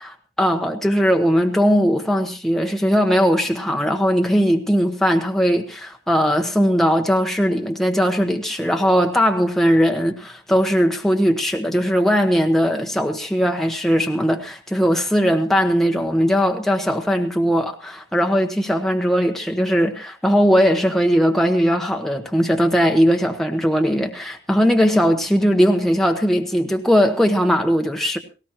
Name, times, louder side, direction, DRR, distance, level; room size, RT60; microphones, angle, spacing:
voice 1, 0.0-28.2, equal, ahead, 1.1 m, -19 dB
18.5 x 17.5 x 3.0 m
head